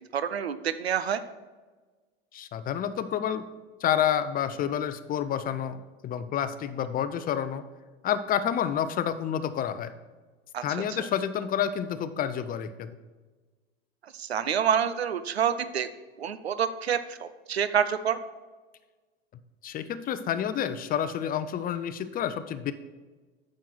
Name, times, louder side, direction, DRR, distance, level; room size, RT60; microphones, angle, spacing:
voice 1, 0.1-1.2 10.5-10.6 14.0-15.9 16.2-18.2, right 8 dB, 85° right, 13 dB, 0.6 m, -27 dB
voice 2, 2.3-3.4 3.8-7.6 8.0-9.9 10.6-12.9 19.6-22.7, left 9 dB, 30° left, 12 dB, 0.7 m, -29 dB
9.1 x 6.5 x 4.6 m, 1.3 s
hypercardioid pair, 90°, 31 cm